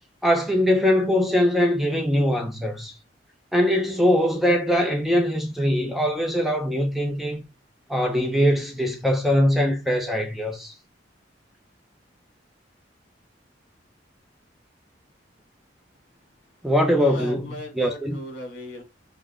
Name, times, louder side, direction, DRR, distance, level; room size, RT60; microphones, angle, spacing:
voice 1, 0.2-2.9 3.5-7.4 7.9-10.7 16.6-17.5 17.8-18.2, equal, ahead, 0.6 m, -22 dB
voice 2, 16.8-18.8, left 1 dB, 65° left, 2.5 m, -38 dB
5.2 x 2.1 x 3.6 m
head